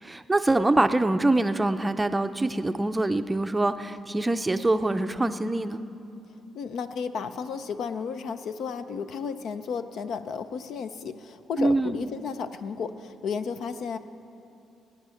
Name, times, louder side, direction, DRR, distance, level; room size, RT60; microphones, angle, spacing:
voice 1, 0.0-5.8 11.6-12.1, right 2 dB, 15° right, 9 dB, 0.5 m, -24 dB
voice 2, 6.5-14.0, left 6 dB, 70° left, 11 dB, 0.6 m, -33 dB
17.0 x 10.0 x 5.8 m, 2.7 s
cardioid pair, 90°, 0 cm